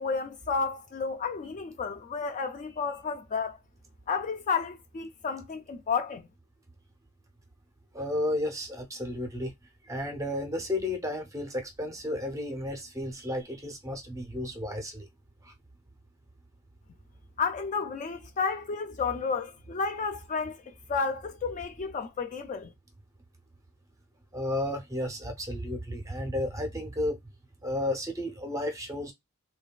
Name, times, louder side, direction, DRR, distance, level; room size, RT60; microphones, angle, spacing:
voice 1, 0.0-3.6 4.1-6.3 17.4-22.7, left 5 dB, 35° left, 0.3 m, -32 dB
voice 2, 7.9-9.5 9.9-15.1 15.4-15.5 24.3-27.2 27.6-29.1, left 1 dB, 15° right, 0.6 m, -32 dB
3.2 x 2.2 x 2.2 m
head